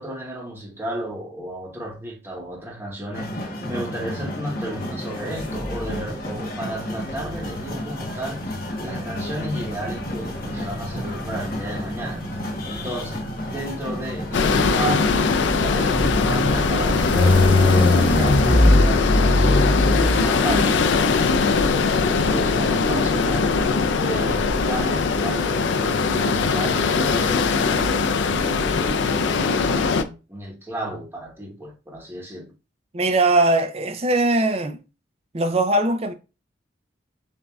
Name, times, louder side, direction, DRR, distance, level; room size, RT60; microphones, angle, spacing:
voice 1, 0.0-12.2 12.6-13.3 13.5-18.4 18.7-20.8 21.1-32.5, right 1 dB, 10° right, 1.1 m, -33 dB
sound 1, 3.1-18.7, left 1 dB, 50° left, 1.1 m, -32 dB
sound 2, 5.4-6.1 7.1-20.8, left 2 dB, 25° left, 0.7 m, -23 dB
sound 3, 14.3-30.0, left 4 dB, 70° left, 0.4 m, -21 dB
voice 2, 32.9-34.8 35.3-36.1, right 2 dB, 30° right, 0.5 m, -20 dB
7.0 x 2.6 x 2.3 m
head